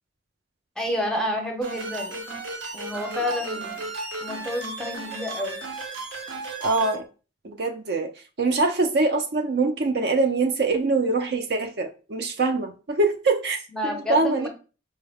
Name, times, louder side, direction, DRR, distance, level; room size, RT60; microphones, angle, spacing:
voice 1, 0.8-2.2 2.7-3.9 4.2-5.6 13.7-14.5, left 1 dB, 5° left, 0.6 m, -29 dB
sound 1, 1.6-6.9, right 3 dB, 85° right, 0.9 m, -34 dB
voice 2, 6.6-7.0 7.4-8.1 8.4-14.5, right 3 dB, 60° right, 0.5 m, -24 dB
4.5 x 2.1 x 3.4 m
head